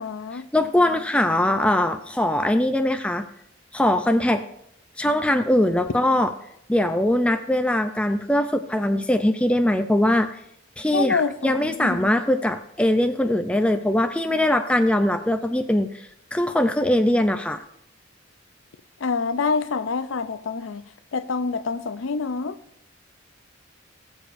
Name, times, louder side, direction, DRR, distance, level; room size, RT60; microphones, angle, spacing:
voice 1, 0.0-0.5 10.9-12.1 19.0-20.8 21.1-22.6, left 4 dB, 80° left, 0.5 m, -26 dB
voice 2, 0.5-3.2 3.7-4.4 5.0-6.3 6.7-10.3 10.8-17.6, left 1 dB, 5° left, 0.4 m, -21 dB
20.0 x 7.1 x 2.6 m
head